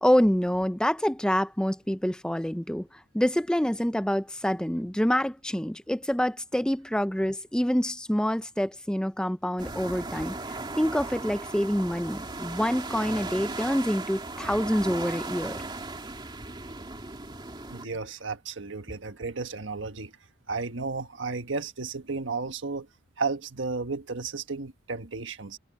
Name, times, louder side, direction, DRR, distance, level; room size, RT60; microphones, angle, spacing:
voice 1, 0.0-15.6, equal, 5° left, 0.5 m, -27 dB
sound 1, 9.6-17.9, right 2 dB, 25° right, 2.5 m, -37 dB
voice 2, 17.7-20.1 20.5-22.9 23.2-25.6, right 4 dB, 80° right, 1.4 m, -33 dB
head